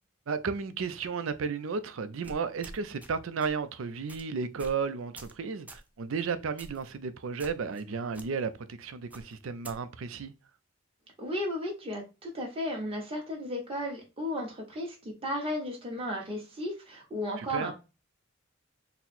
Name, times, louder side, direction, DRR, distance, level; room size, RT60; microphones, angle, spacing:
voice 1, 0.3-10.3 17.4-17.7, right 5 dB, 70° right, 0.5 m, -33 dB
sound 1, 2.2-3.1 3.4-3.6 4.1-4.2 4.6-4.8 5.2-5.4 5.7-5.9 6.6-6.9 7.4-7.8 8.1-8.3 9.1-9.8, right 1 dB, 5° right, 0.4 m, -47 dB
voice 2, 11.2-17.7, left 1 dB, 30° right, 1.2 m, -34 dB
4.0 x 2.0 x 4.2 m
head